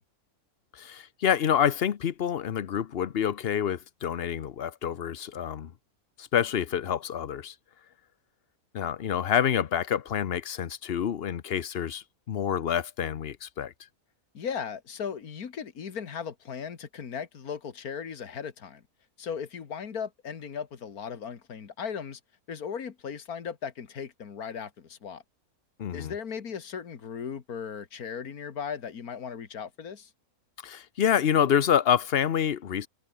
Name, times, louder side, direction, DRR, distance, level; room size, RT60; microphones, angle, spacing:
voice 1, 0.7-5.7 6.2-7.5 8.7-13.7 25.8-26.1 30.6-32.9, left 9 dB, 50° left, 0.9 m, -27 dB
voice 2, 14.3-18.8 19.2-22.2 22.5-25.2 25.9-30.1, left 7 dB, 85° left, 2.1 m, -37 dB
omnidirectional pair, 1.5 m